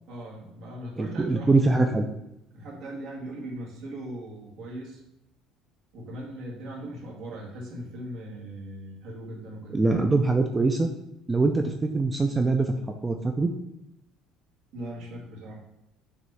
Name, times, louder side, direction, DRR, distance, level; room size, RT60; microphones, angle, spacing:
voice 1, 0.1-1.9 2.5-5.0 5.9-9.8 14.7-15.6, right 1 dB, 55° right, -3 dB, 1.8 m, -39 dB
voice 2, 1.0-2.1 9.7-10.9 11.3-12.7 13.0-13.5, right 3 dB, 10° right, 5 dB, 0.3 m, -23 dB
6.1 x 3.1 x 5.6 m, 0.86 s
cardioid pair, 175°, 0 cm